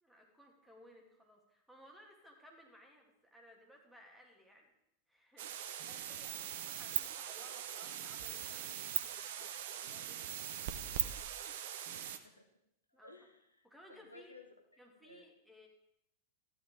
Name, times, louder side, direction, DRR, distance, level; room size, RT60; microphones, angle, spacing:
voice 1, 0.0-4.7 5.1-8.9 9.2-10.3 12.9-13.1 13.6-14.4 14.8-15.7, equal, 5° right, 0 dB, 2.3 m, -60 dB
sound 1, 5.4-12.2, right 10 dB, 55° right, 0.8 m, -40 dB
voice 2, 11.9-12.5 12.9-14.5 15.0-15.2, left 3 dB, 85° left, 5 dB, 1.1 m, -58 dB
14.0 x 10.5 x 3.7 m, 0.79 s
figure-of-eight pair, 90°, 0 cm